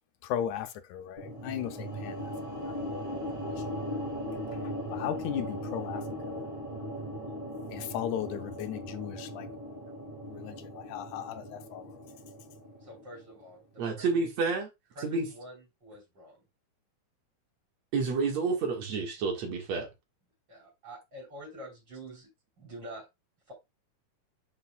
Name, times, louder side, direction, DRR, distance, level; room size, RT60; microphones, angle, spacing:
voice 1, 0.2-2.3 2.6-3.8 4.9-6.4 7.7-9.5 10.3-11.9, left 10 dB, 75° left, 2.1 m, -37 dB
sound 1, 1.2-13.4, equal, 15° right, 1.4 m, -38 dB
voice 2, 12.8-14.2 14.9-16.5 20.5-22.3 22.6-23.0 23.5-23.6, right 1 dB, 30° right, 4.5 m, -47 dB
voice 3, 13.8-14.7 15.0-15.3 17.9-19.9, right 4 dB, 60° right, 2.7 m, -29 dB
10.0 x 5.4 x 2.3 m
omnidirectional pair, 3.6 m